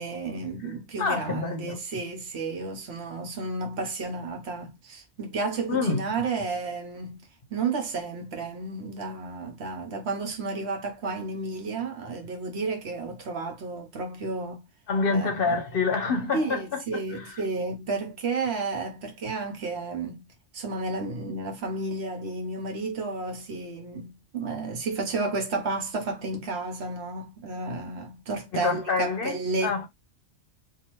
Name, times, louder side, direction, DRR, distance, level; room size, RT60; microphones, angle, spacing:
voice 1, 0.0-14.7 15.1-15.6 16.3-20.2 20.5-29.9, right 3 dB, 65° right, 1.1 m, -32 dB
voice 2, 1.0-1.8 5.7-6.0 14.9-17.4 28.6-29.9, left 4 dB, 60° left, 0.8 m, -27 dB
2.8 x 2.4 x 3.0 m
omnidirectional pair, 1.2 m